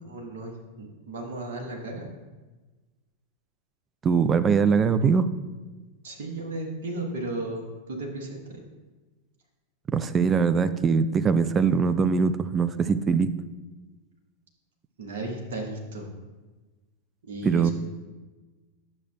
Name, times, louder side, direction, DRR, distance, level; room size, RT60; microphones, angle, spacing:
voice 1, 0.0-2.1 6.0-8.7 15.0-16.1 17.3-17.7, right 2 dB, 55° right, 0 dB, 1.2 m, -35 dB
voice 2, 4.0-5.3 9.9-13.3 17.4-17.7, right 5 dB, 20° right, 12 dB, 0.4 m, -22 dB
9.7 x 6.4 x 2.3 m, 1.2 s
figure-of-eight pair, 90°, 0 cm